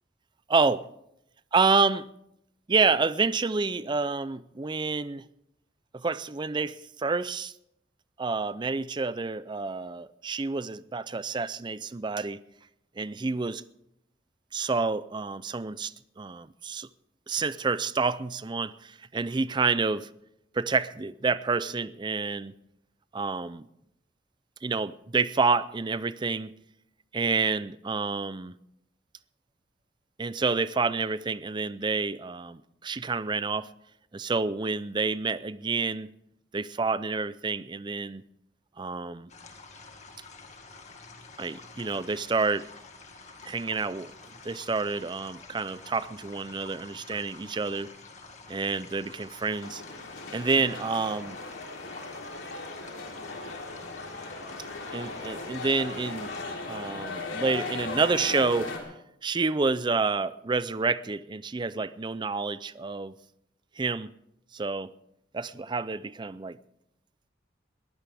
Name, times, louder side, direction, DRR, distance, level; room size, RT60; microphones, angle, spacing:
voice 1, 0.5-0.9 1.5-2.1 2.7-5.2 5.9-7.5 8.2-12.4 13.0-13.6 14.5-16.9 17.3-20.1 20.5-22.5 23.1-23.6 24.6-26.5 27.1-28.5 30.2-33.7 34.1-36.1 36.5-38.2 38.8-39.3 41.4-42.7 43.5-44.1 44.4-47.9 48.5-49.8 50.3-51.4 54.9-56.3 56.7-58.7 59.2-63.1 63.8-64.1 64.5-64.9 65.3-66.6, right 4 dB, 25° right, 0.4 m, -28 dB
sound 1, 39.3-56.5, left 3 dB, 40° left, 1.9 m, -48 dB
sound 2, 49.6-58.8, left 3 dB, 85° left, 3.3 m, -38 dB
21.5 x 15.0 x 3.5 m
head